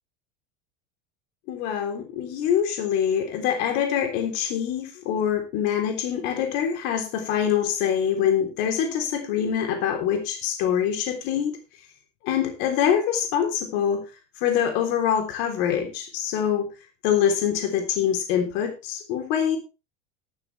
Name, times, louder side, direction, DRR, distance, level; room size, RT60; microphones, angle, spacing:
voice 1, 1.5-11.6 12.2-14.0 14.4-16.7 17.0-19.6, left 9 dB, 60° left, 4 dB, 3.5 m, -24 dB
12.5 x 12.0 x 3.3 m, 0.29 s
supercardioid pair, 150°, 20 cm